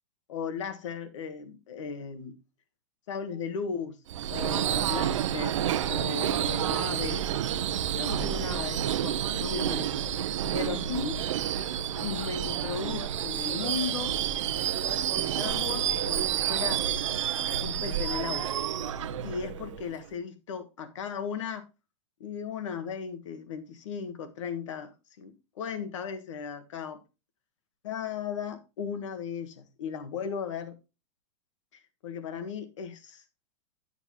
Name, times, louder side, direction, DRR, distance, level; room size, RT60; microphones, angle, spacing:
voice 1, 0.3-2.4 3.1-4.0 4.3-5.6 5.9-7.3 8.0-10.1 10.5-11.2 12.0-14.2 15.1-16.9 17.6-18.5 19.2-21.7 22.2-27.0 27.8-30.8 31.7-33.2, left 6 dB, 80° left, 1.6 m, -36 dB
Subway metro underground / Screech, 4.1-20.0, right 10 dB, 85° right, 0.7 m, -29 dB
10.0 x 6.9 x 2.9 m
supercardioid pair, 175°, 16 cm